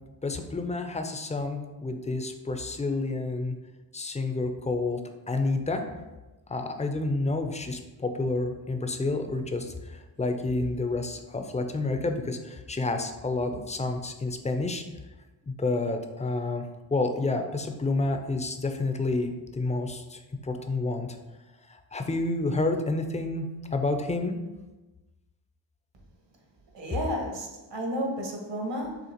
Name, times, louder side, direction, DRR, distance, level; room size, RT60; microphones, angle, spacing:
voice 1, 0.2-3.5 3.9-5.0 5.3-5.9 6.5-14.8 15.5-16.6 16.9-21.1 21.7-24.3, left 2 dB, 15° left, 6 dB, 0.4 m, -29 dB
voice 2, 26.7-29.0, equal, 60° right, 1 dB, 1.3 m, -32 dB
6.4 x 2.5 x 2.9 m, 1.1 s
cardioid pair, 60°, 48 cm